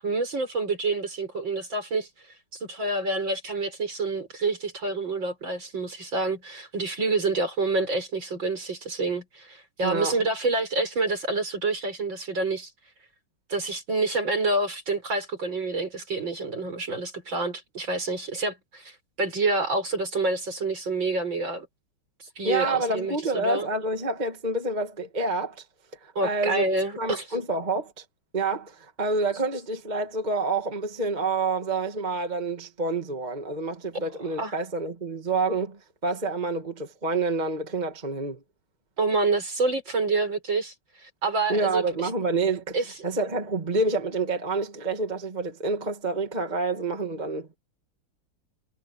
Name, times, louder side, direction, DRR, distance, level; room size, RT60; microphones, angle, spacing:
voice 1, 0.0-2.1 2.6-12.7 13.5-21.7 22.2-23.7 26.1-27.3 34.4-34.5 39.0-42.1 42.7-42.8, right 3 dB, 60° right, 6.5 m, -28 dB
voice 2, 9.8-10.2 22.4-25.6 26.0-26.6 27.0-28.0 28.3-38.4 41.5-47.6, right 3 dB, 20° right, 2.1 m, -28 dB
omnidirectional pair, 2.4 m